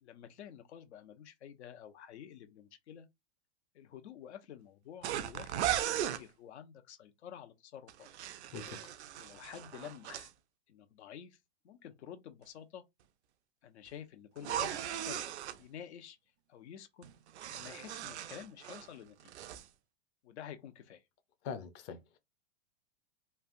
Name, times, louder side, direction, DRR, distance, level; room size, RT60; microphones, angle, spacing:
voice 1, 0.0-3.1 3.7-8.1 9.2-10.3 10.7-11.4 11.6-12.8 13.6-15.3 15.6-16.2 16.5-17.1 17.5-19.2 20.2-21.0, left 9 dB, 85° left, 0.8 m, -50 dB
sound 1, 5.0-6.2 7.9-10.3 14.4-15.6 17.0-18.9 19.2-19.7, right 11 dB, 85° right, 0.5 m, -37 dB
voice 2, 21.4-22.2, left 6 dB, 35° left, 0.6 m, -42 dB
3.2 x 2.4 x 2.5 m
supercardioid pair, 145°, 33 cm